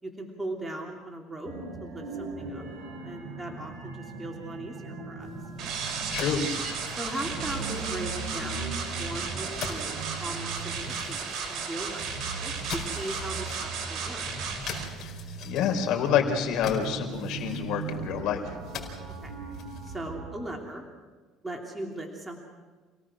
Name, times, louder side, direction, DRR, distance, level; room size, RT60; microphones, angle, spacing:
voice 1, 0.0-1.5 1.8-2.6 3.0-5.3 6.9-14.2 19.2-19.3 19.8-20.8 21.4-22.5, right 1 dB, 10° right, 0 dB, 3.0 m, -38 dB
sound 1, 1.4-20.5, right 4 dB, 65° right, 7.6 m, -39 dB
sound 2, 5.2-20.0, left 7 dB, 55° left, 4.7 m, -44 dB
sound 3, 5.6-14.8, right 5 dB, 50° right, 5.0 m, -34 dB
voice 2, 6.1-6.4 15.0-15.1 15.4-18.4, left 8 dB, 70° left, 3 dB, 4.0 m, -27 dB
28.5 x 18.0 x 6.2 m, 1.3 s
cardioid pair, 115°, 0 cm